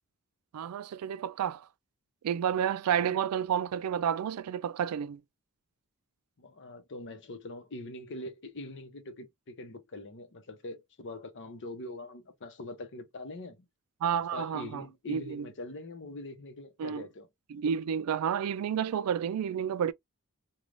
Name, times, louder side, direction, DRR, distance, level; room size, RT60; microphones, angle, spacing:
voice 1, 0.5-1.7 2.2-5.2 14.0-15.5 16.8-17.0 17.5-19.9, right 8 dB, 80° right, 0.3 m, -30 dB
voice 2, 6.4-13.7 14.3-17.3, left 2 dB, 55° left, 0.8 m, -43 dB
2.5 x 2.3 x 3.1 m
head